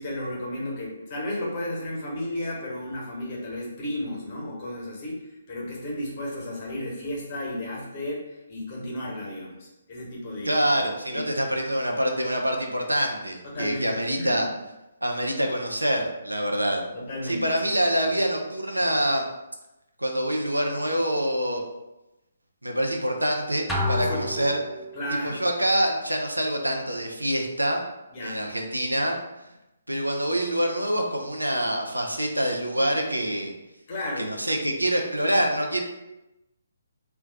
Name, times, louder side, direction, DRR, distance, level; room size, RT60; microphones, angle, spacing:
voice 1, 0.0-11.5 13.4-14.4 16.9-17.5 24.1-24.2 24.9-25.4 28.1-28.4 33.9-34.3, left 1 dB, 35° left, -3 dB, 1.0 m, -33 dB
voice 2, 10.4-14.5 15.0-16.8 17.2-19.3 20.0-21.6 22.6-24.6 25.2-27.8 28.2-29.2 29.9-33.5 34.2-35.8, equal, 85° right, 2 dB, 0.5 m, -25 dB
sound 1, 23.7-25.2, left 1 dB, 5° left, 0.3 m, -29 dB
2.3 x 2.2 x 3.8 m, 0.96 s
figure-of-eight pair, 135°, 0 cm